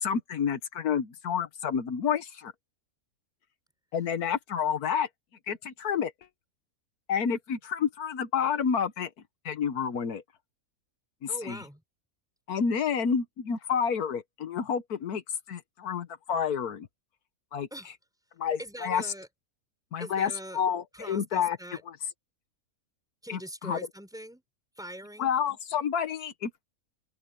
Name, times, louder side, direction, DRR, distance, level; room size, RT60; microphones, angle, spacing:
voice 1, 0.0-2.5 3.9-5.1 5.5-6.1 7.1-9.1 9.4-10.2 11.4-11.6 12.5-15.2 15.5-16.9 17.5-17.9 18.4-19.1 19.9-21.6 21.8-22.0 23.3-23.8 25.2-26.6, left 7 dB, 85° left, 1.6 m, -29 dB
voice 2, 11.3-11.8 17.7-17.9 18.6-19.3 20.0-20.6 20.9-21.8 23.2-24.4 24.8-25.3, right 1 dB, ahead, 6.1 m, -42 dB
open air
omnidirectional pair, 1.6 m